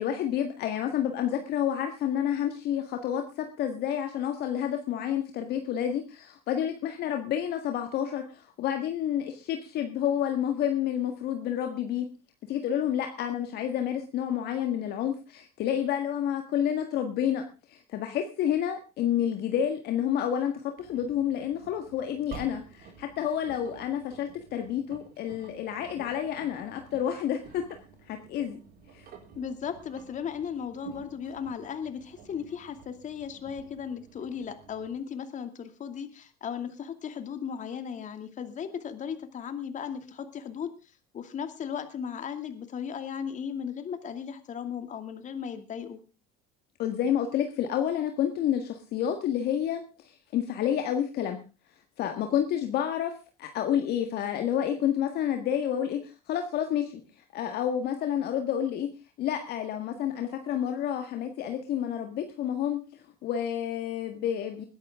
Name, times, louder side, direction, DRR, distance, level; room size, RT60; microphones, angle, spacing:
voice 1, 0.0-12.0 12.5-17.4 17.7-27.6 28.0-28.6 28.9-29.1 46.8-51.4 52.0-53.1 53.4-56.9 57.3-58.9 59.2-64.6, left 9 dB, 55° left, 5 dB, 1.7 m, -29 dB
Engine, 20.8-35.0, right 5 dB, 50° right, 4.9 m, -51 dB
voice 2, 29.3-40.7 41.1-46.0, left 7 dB, 40° left, 8 dB, 2.5 m, -36 dB
21.0 x 11.0 x 3.7 m, 0.32 s
supercardioid pair, 95°, 20 cm